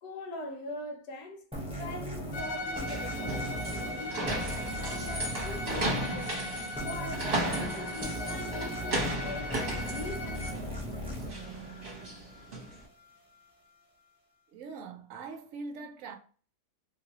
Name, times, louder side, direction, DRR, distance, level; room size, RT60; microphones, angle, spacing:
voice 1, 0.0-1.5 1.8-11.0, left 2 dB, 90° left, 1.3 m, -43 dB
sound 1, 1.5-12.7, equal, 5° right, 0.6 m, -39 dB
Bowed string instrument, 2.3-10.7, left 1 dB, 65° left, 0.9 m, -39 dB
sound 2, 2.4-12.8, right 1 dB, 40° right, 1.1 m, -36 dB
voice 2, 14.5-16.2, right 4 dB, 70° right, 0.8 m, -42 dB
3.0 x 2.8 x 2.9 m
omnidirectional pair, 1.8 m